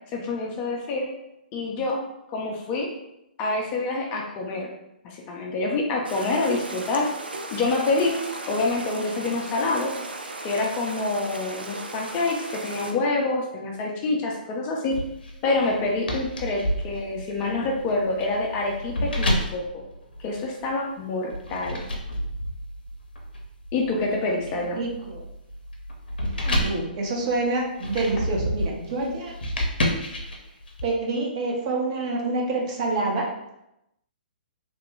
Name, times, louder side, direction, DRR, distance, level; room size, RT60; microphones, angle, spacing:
voice 1, 0.1-1.1 1.5-2.0 2.3-2.9 3.4-4.7 5.0-7.1 7.5-8.2 8.5-9.9 10.4-15.0 15.4-19.8 20.2-21.8 23.7-24.8, left 3 dB, 25° left, 0 dB, 0.5 m, -26 dB
sound 1, 6.0-12.9, right 2 dB, 80° right, 0.5 m, -36 dB
sound 2, 14.9-20.7 21.3-30.8, equal, 70° left, 0.6 m, -30 dB
voice 2, 24.7-25.2 26.3-29.4 30.8-33.3, right 2 dB, 40° right, -1 dB, 0.8 m, -27 dB
3.0 x 2.1 x 3.2 m, 0.84 s
figure-of-eight pair, 125°, 5 cm